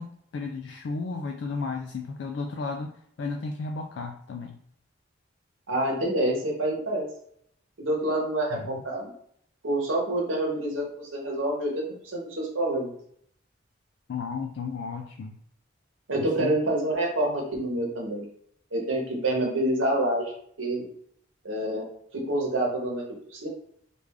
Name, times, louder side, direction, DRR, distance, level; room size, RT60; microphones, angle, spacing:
voice 1, 0.0-4.6 8.5-8.8 14.1-15.4 16.4-16.5, left 4 dB, 65° left, 3 dB, 0.3 m, -34 dB
voice 2, 5.7-7.1 7.8-9.1 9.6-12.9 16.1-18.3 18.7-20.3 20.6-20.9 21.4-21.9 22.1-23.0 23.3-23.5, right 1 dB, 90° right, -1 dB, 1.0 m, -27 dB
3.3 x 2.4 x 3.5 m, 0.67 s
head